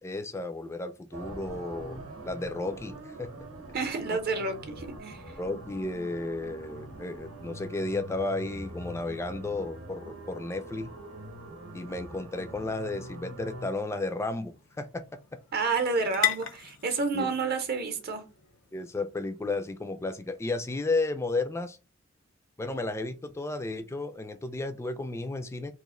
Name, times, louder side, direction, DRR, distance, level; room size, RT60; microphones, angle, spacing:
voice 1, 0.0-3.3 4.1-4.2 5.4-10.9 11.7-15.0 17.1-17.3 18.7-21.8 22.6-25.7, left 2 dB, 15° left, 0.3 m, -33 dB
sound 1, 1.1-13.7, right 1 dB, 85° right, 0.8 m, -43 dB
voice 2, 3.7-5.2 15.5-18.2, right 4 dB, 50° right, 0.7 m, -29 dB
sound 2, 13.1-20.5, left 13 dB, 75° left, 0.6 m, -38 dB
3.0 x 2.4 x 3.6 m
head